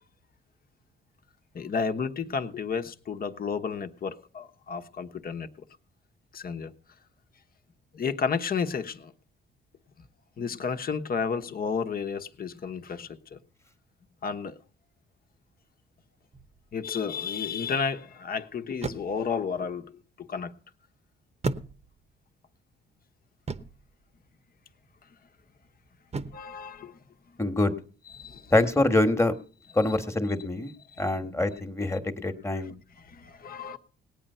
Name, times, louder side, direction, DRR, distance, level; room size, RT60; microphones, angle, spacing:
voice 1, 1.5-5.5 6.3-6.7 7.9-9.1 10.4-13.4 14.2-14.5 16.7-20.5 26.3-27.0 28.2-28.5 30.9-31.0 33.1-33.8, left 6 dB, 50° left, 1.2 m, -32 dB
sound 1, 16.3-16.7 18.8-19.3 21.4-22.2 23.5-23.9 26.1-26.6, right 4 dB, 35° right, 1.0 m, -35 dB
voice 2, 27.4-27.7 28.5-29.3 29.7-32.7, left 2 dB, 15° left, 1.5 m, -25 dB
18.5 x 9.1 x 5.6 m
cardioid pair, 90°, 20 cm